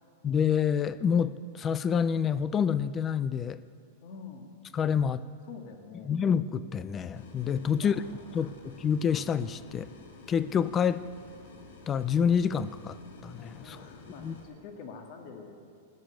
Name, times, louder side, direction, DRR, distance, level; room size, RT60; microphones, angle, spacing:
voice 1, 0.2-3.6 4.7-5.2 6.0-8.0 8.3-9.9 10.3-11.0 11.9-13.0 13.2-13.8 14.2-14.3, left 7 dB, 20° left, 16 dB, 0.4 m, -27 dB
voice 2, 4.0-4.5 5.4-6.2 7.7-8.6 13.6-15.6, left 5 dB, 50° left, 4 dB, 2.0 m, -46 dB
sound 1, 7.1-14.4, left 3 dB, 75° left, 2.4 m, -50 dB
14.0 x 8.8 x 9.1 m, 2.2 s
supercardioid pair, 155°, 0 cm